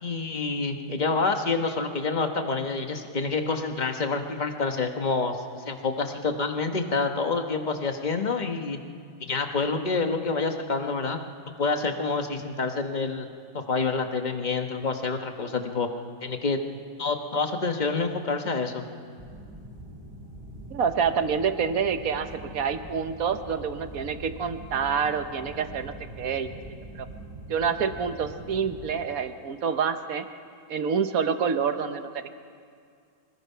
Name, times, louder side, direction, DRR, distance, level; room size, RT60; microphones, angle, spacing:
voice 1, 0.0-8.8 9.3-11.2 11.6-13.3 13.5-15.9 16.2-16.6 17.0-18.8, left 4 dB, 30° left, 5 dB, 1.0 m, -27 dB
sound 1, 19.2-28.9, right 1 dB, 15° right, 3.5 m, -43 dB
voice 2, 20.7-26.5 26.9-27.1 27.5-30.2 30.7-32.3, right 6 dB, 55° right, 9 dB, 1.2 m, -27 dB
24.5 x 19.5 x 5.7 m, 2.2 s
omnidirectional pair, 2.0 m